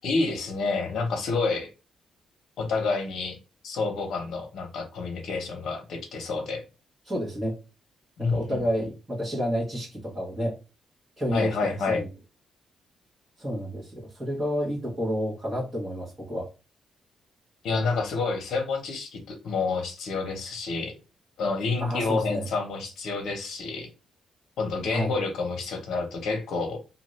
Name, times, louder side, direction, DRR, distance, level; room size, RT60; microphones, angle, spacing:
voice 1, 0.0-1.7 2.6-3.4 3.6-6.6 8.2-8.6 11.3-12.0 17.6-20.9 21.4-23.9 24.6-26.8, left 4 dB, 75° left, 4 dB, 0.9 m, -29 dB
voice 2, 7.0-7.5 8.2-10.6 11.2-12.1 13.4-16.5 21.8-22.4 24.9-25.1, equal, 20° right, -7 dB, 1.3 m, -30 dB
2.8 x 2.5 x 3.1 m, 0.31 s
cardioid pair, 145°, 0 cm